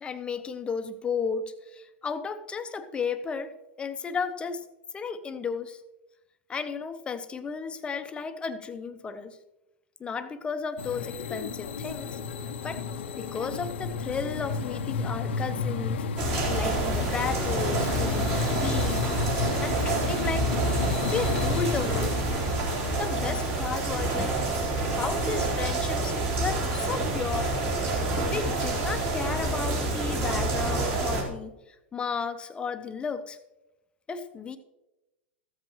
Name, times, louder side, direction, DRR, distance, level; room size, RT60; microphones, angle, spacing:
voice 1, 0.0-4.6 4.9-5.8 6.5-9.4 10.0-12.2 12.6-12.8 13.2-16.0 16.4-19.1 19.6-20.5 21.0-22.2 23.0-24.4 24.9-27.5 28.3-31.6 31.9-33.4 34.1-34.6, left 5 dB, 15° left, 9 dB, 0.7 m, -33 dB
sound 1, 10.8-26.1, left 6 dB, 80° left, 0.7 m, -33 dB
sound 2, 16.2-31.2, right 2 dB, 40° right, 3.4 m, -28 dB
14.0 x 7.8 x 3.0 m, 0.97 s
hypercardioid pair, 130°, 6 cm